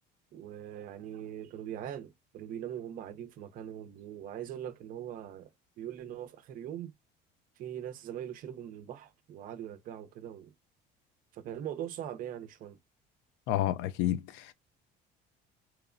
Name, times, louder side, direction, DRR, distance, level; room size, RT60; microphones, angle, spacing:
voice 1, 0.3-5.5 5.8-6.9 7.6-10.5 11.3-12.8, right 10 dB, 50° right, 0.5 m, -41 dB
voice 2, 13.5-14.5, left 13 dB, 80° left, 0.4 m, -30 dB
2.8 x 2.0 x 2.5 m
cardioid pair, 145°, 18 cm